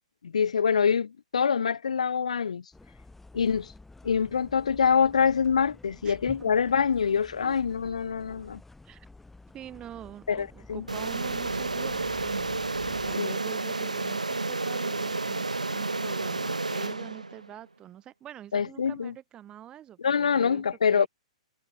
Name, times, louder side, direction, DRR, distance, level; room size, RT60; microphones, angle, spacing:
voice 1, 0.2-2.6 3.3-3.7 4.0-8.6 10.3-10.8 13.2-13.3 18.5-19.1 20.0-21.1, left 6 dB, 70° left, 0.7 m, -25 dB
sound 1, 2.7-13.2, left 2 dB, 5° left, 6.1 m, -51 dB
voice 2, 6.0-6.5 7.4-7.6 8.8-9.1 9.5-21.1, right 11 dB, 25° right, 2.9 m, -45 dB
sound 2, 10.9-17.5, right 3 dB, 85° right, 0.3 m, -31 dB
figure-of-eight pair, 110°, 4 cm